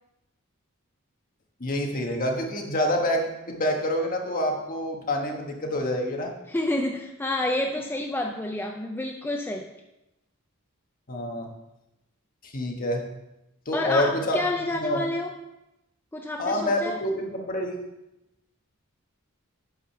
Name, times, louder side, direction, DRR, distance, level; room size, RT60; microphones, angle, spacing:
voice 1, 1.6-6.3 11.1-11.5 12.4-13.1 13.6-15.0 16.4-17.8, left 1 dB, 40° left, 2 dB, 1.3 m, -27 dB
voice 2, 6.5-9.7 13.7-15.4 16.1-17.0, left 1 dB, 10° left, 2 dB, 0.5 m, -29 dB
8.5 x 5.0 x 5.7 m, 0.91 s
head